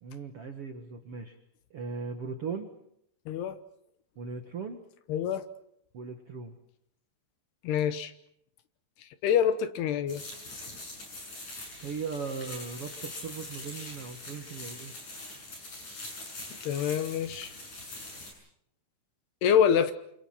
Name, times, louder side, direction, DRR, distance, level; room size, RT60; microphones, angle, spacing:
voice 1, 0.0-1.4 1.7-2.7 4.1-4.8 5.9-6.6 11.8-14.9, right 5 dB, 75° right, 6 dB, 1.3 m, -38 dB
voice 2, 3.3-3.6 5.1-5.4 7.6-8.1 9.2-10.2 16.6-17.5 19.4-19.9, left 8 dB, 70° left, 11 dB, 2.9 m, -26 dB
sound 1, 10.1-18.3, left 2 dB, 40° left, 8.7 m, -43 dB
28.0 x 27.5 x 5.9 m, 0.75 s
omnidirectional pair, 5.3 m